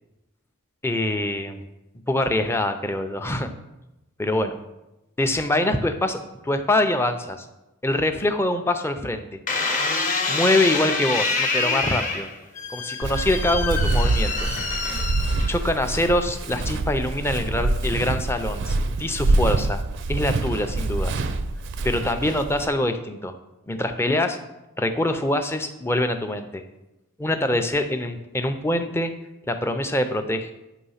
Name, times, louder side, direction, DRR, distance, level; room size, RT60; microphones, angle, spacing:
voice 1, 0.8-1.7 2.1-3.5 4.2-4.6 5.2-6.2 6.4-7.5 7.8-9.3 10.3-12.3 12.7-14.5 15.5-19.8 20.1-21.1 21.8-23.3 23.7-24.4 24.8-26.6 27.2-29.1 29.5-30.5, left 1 dB, 10° left, 7 dB, 0.4 m, -24 dB
sound 1, 9.5-15.9 16.5-17.0, left 3 dB, 35° left, 0.8 m, -26 dB
Walk footsteps, 13.0-22.7, right 2 dB, 55° right, 0.4 m, -25 dB
9.2 x 3.1 x 5.6 m, 0.96 s
head